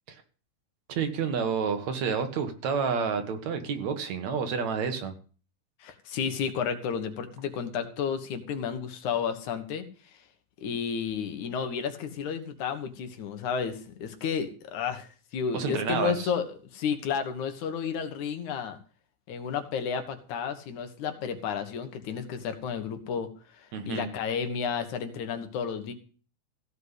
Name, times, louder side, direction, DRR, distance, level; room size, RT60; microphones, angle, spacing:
voice 1, 0.9-5.2 15.5-16.3 23.7-24.1, right 6 dB, 70° right, 7 dB, 2.8 m, -29 dB
voice 2, 5.8-9.8 10.6-16.5 16.7-18.8 19.3-25.9, left 7 dB, 80° left, 8 dB, 2.9 m, -32 dB
16.0 x 5.5 x 8.2 m, 0.39 s
omnidirectional pair, 3.4 m